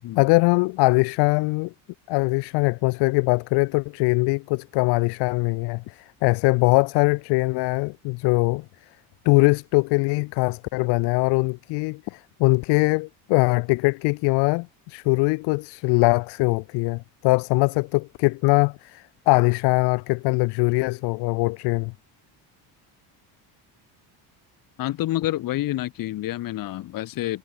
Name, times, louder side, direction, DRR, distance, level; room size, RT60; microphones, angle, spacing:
voice 1, 0.2-1.7 2.1-8.7 9.2-21.9, left 27 dB, 70° left, 0.7 m, -22 dB
voice 2, 24.8-27.4, left 15 dB, 50° left, 5.3 m, -28 dB
cardioid pair, 160°, 42 cm